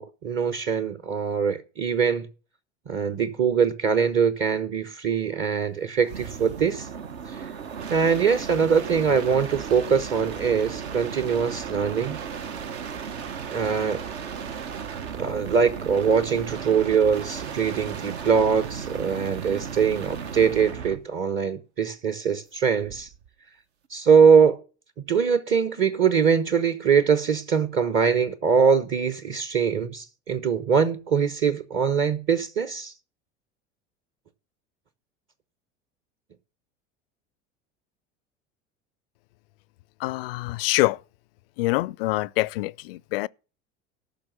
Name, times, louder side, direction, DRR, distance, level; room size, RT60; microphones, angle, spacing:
voice 1, 0.0-2.3 2.9-6.9 7.9-12.2 13.5-14.0 15.2-23.1 23.9-24.6 25.1-32.9, right 6 dB, 35° right, 1.0 m, -22 dB
sound 1, 6.0-21.1 22.8-23.3, right 7 dB, 60° right, 1.1 m, -35 dB
voice 2, 40.0-41.0 41.6-43.3, left 20 dB, 55° left, 0.4 m, -25 dB
13.5 x 6.0 x 6.4 m
figure-of-eight pair, 70°, 37 cm